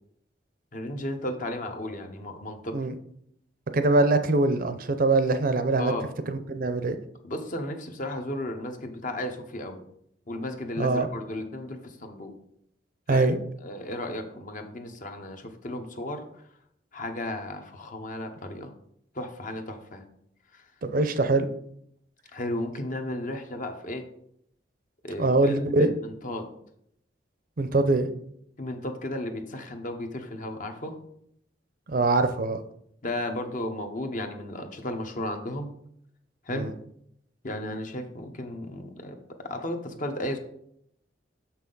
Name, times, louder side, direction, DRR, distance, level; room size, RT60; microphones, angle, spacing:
voice 1, 0.7-2.8 5.8-6.1 7.2-9.8 10.3-12.3 13.1-13.3 13.6-16.5 16.9-18.7 19.1-20.0 20.5-20.7 22.3-24.0 25.0-26.5 28.6-31.0 33.0-35.7 36.4-36.7 37.4-40.4, left 1 dB, 45° left, 5 dB, 0.9 m, -34 dB
voice 2, 3.7-5.9 6.3-7.0 10.8-11.1 13.1-13.4 20.8-21.5 25.2-25.9 27.6-28.1 31.9-32.6 36.5-36.7, right 2 dB, 50° right, 10 dB, 0.6 m, -23 dB
6.6 x 5.7 x 3.9 m, 0.71 s
head